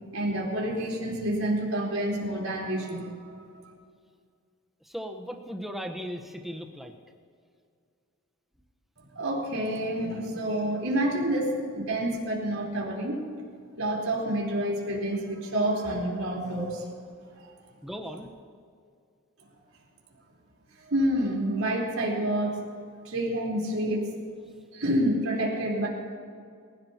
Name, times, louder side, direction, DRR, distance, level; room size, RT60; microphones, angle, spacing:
voice 1, 0.1-3.4 9.1-13.2 13.7-16.9 17.4-17.5 20.8-22.6 23.0-24.1 24.7-25.9, right 1 dB, 80° right, -3 dB, 4.2 m, -28 dB
voice 2, 4.8-6.9 17.8-18.3, equal, ahead, 3 dB, 1.1 m, -37 dB
27.0 x 16.0 x 3.0 m, 2.2 s
head